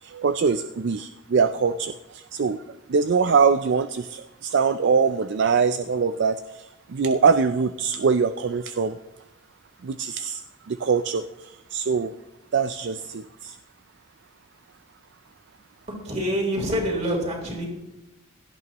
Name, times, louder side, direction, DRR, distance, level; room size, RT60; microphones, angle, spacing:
voice 1, 0.0-2.6 2.9-9.0 9.8-10.4 10.7-12.1 12.5-13.6, right 5 dB, 55° right, 11 dB, 0.4 m, -23 dB
voice 2, 16.0-17.7, equal, 30° right, -1 dB, 3.6 m, -26 dB
17.0 x 12.5 x 3.0 m, 0.93 s
head